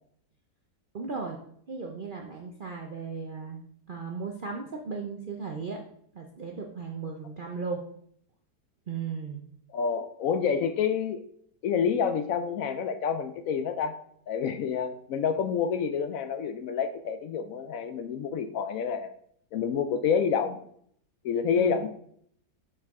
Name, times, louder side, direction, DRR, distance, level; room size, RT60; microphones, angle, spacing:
voice 1, 0.9-1.4 1.7-3.6 3.9-5.8 6.1-7.8 8.9-9.4 21.5-21.9, right 5 dB, 65° right, 0 dB, 0.5 m, -36 dB
voice 2, 9.7-11.2 11.6-14.0 14.3-19.1 19.5-20.6 21.2-21.9, left 6 dB, 70° left, 10 dB, 0.8 m, -28 dB
6.7 x 5.6 x 3.6 m, 0.66 s
omnidirectional pair, 1.8 m